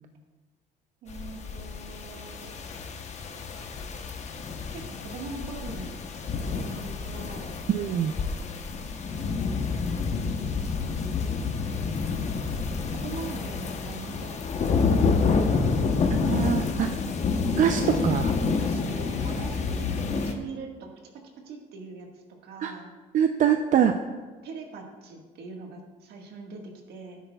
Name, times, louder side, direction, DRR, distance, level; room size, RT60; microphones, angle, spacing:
voice 1, 1.0-2.5 4.7-6.0 6.5-7.5 10.6-11.3 12.4-12.6 12.9-15.7 16.7-17.2 17.9-18.1 18.6-20.9 21.4-22.9 24.4-27.2, right 4 dB, 70° right, 1 dB, 1.7 m, -42 dB
sound 1, 1.1-20.3, left 4 dB, 45° left, 0.9 m, -28 dB
voice 2, 7.7-8.1 16.1-16.9 17.6-18.3 22.6-22.7 23.1-23.9, right 9 dB, 50° right, 6 dB, 0.5 m, -24 dB
12.0 x 10.0 x 2.3 m, 1.4 s
cardioid pair, 110°, 17 cm